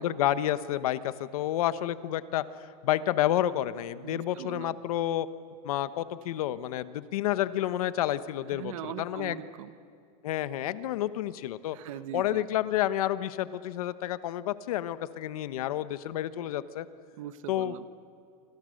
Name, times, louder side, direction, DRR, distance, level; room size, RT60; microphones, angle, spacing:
voice 1, 0.0-5.3 5.6-9.4 10.2-11.8 12.1-16.9 17.5-17.8, left 12 dB, 65° left, 14 dB, 1.1 m, -30 dB
voice 2, 4.0-4.8 8.5-9.7 11.7-12.5 17.2-17.8, right 11 dB, 60° right, 12 dB, 1.3 m, -41 dB
29.0 x 25.0 x 6.6 m, 2.5 s
supercardioid pair, 180°, 20 cm